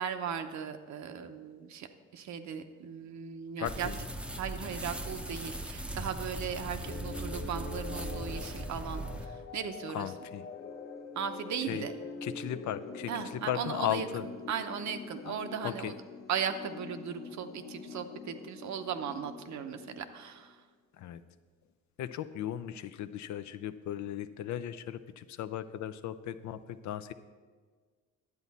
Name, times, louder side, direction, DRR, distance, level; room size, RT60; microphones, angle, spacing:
voice 1, 0.0-1.9 2.1-3.9 4.4-10.1 11.1-11.9 13.1-15.9 16.3-20.6, right 7 dB, 65° right, 8 dB, 0.8 m, -37 dB
voice 2, 3.6-4.0 9.9-10.5 11.7-11.8 12.2-13.1 13.5-14.2 15.3-15.4 15.6-15.9 21.0-21.2 22.0-27.1, left 11 dB, 70° left, 12 dB, 0.5 m, -36 dB
sound 1, 3.6-9.3, right 1 dB, 5° right, 0.6 m, -39 dB
sound 2, 6.8-20.5, left 4 dB, 45° left, 1.0 m, -45 dB
10.5 x 8.1 x 4.1 m, 1.5 s
cardioid pair, 90°, 30 cm